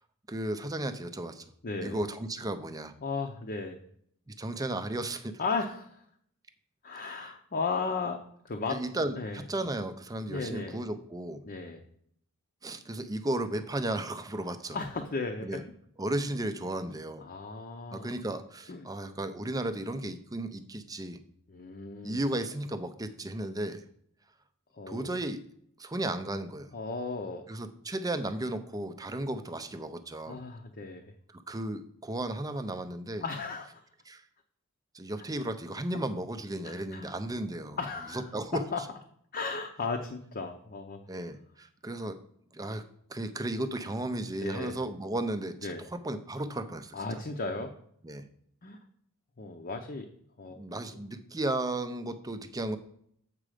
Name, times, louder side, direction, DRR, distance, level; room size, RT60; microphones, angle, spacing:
voice 1, 0.3-1.4 1.8-2.9 4.3-5.4 7.1-7.2 8.7-11.4 12.6-14.8 15.4-15.6 16.0-17.2 17.9-21.2 22.0-23.8 24.9-25.4 25.8-26.7 27.5-30.4 31.3-33.2 34.1-34.2 34.9-37.8 38.1-38.6 41.1-42.2 42.5-42.8 43.1-47.2 48.0-48.3 50.5-52.8, right 1 dB, 15° right, 10 dB, 0.5 m, -34 dB
voice 2, 1.6-2.0 3.0-3.8 5.4-6.0 6.8-8.2 8.4-8.8 9.2-9.4 10.3-10.8 11.4-11.8 14.7-15.6 17.2-18.2 18.7-18.9 21.5-22.2 24.7-25.2 26.7-27.4 30.3-31.1 33.2-33.8 36.6-37.1 37.8-38.3 38.7-38.8 39.3-41.0 44.4-44.8 45.6-45.8 46.9-47.7 48.6-48.8 49.4-50.1 50.4-50.6, left 4 dB, 40° left, 4 dB, 0.7 m, -35 dB
7.6 x 4.9 x 5.0 m, 0.68 s
head